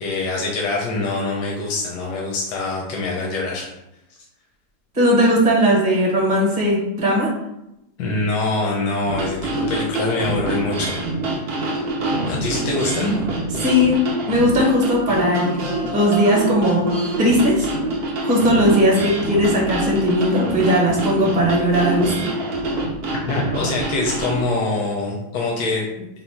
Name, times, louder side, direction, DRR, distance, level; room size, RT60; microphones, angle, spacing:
voice 1, 0.0-3.7 8.0-11.0 12.3-13.2 23.3-26.1, left 3 dB, 85° left, -2 dB, 1.3 m, -24 dB
voice 2, 4.9-7.3 13.6-16.9 17.2-17.7 18.2-22.4, equal, 35° right, -2 dB, 0.9 m, -18 dB
sound 1, 9.1-24.4, right 2 dB, 75° right, 0.5 m, -25 dB
3.9 x 2.0 x 4.4 m, 0.87 s
omnidirectional pair, 1.7 m